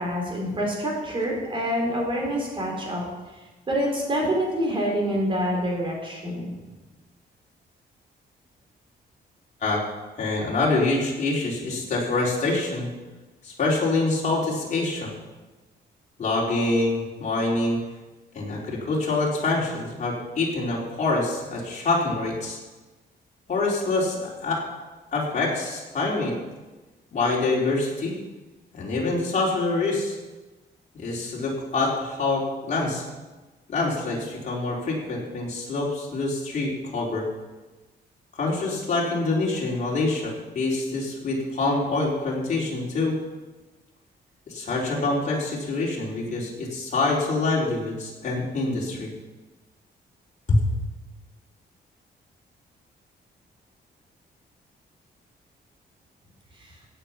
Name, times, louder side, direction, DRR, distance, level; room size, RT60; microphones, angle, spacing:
voice 1, 0.0-3.0 3.7-6.5, equal, 30° right, -1 dB, 4.2 m, -26 dB
voice 2, 10.2-12.9 13.4-15.1 16.2-17.8 18.3-22.6 23.5-24.6 25.1-26.3 27.1-28.2 28.7-30.2 31.0-33.0 33.7-37.2 38.4-43.2 44.5-49.1 50.5-50.6, left 2 dB, 40° left, -4 dB, 3.9 m, -25 dB
16.0 x 8.7 x 5.8 m, 1.2 s
wide cardioid pair, 160°, 18 cm